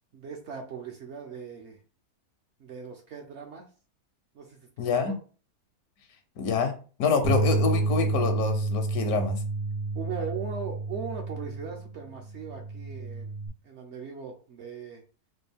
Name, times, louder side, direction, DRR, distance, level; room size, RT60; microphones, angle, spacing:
voice 1, 0.1-1.8 2.6-3.7 4.3-5.2 9.9-13.3 13.6-15.0, right 6 dB, 65° right, 3 dB, 0.7 m, -39 dB
voice 2, 4.8-5.2 6.4-6.7 7.0-9.4, left 5 dB, 75° left, 7 dB, 1.1 m, -26 dB
Bass guitar, 7.2-13.5, right 3 dB, 85° right, 1.7 m, -29 dB
4.2 x 2.3 x 3.4 m, 0.38 s
omnidirectional pair, 1.7 m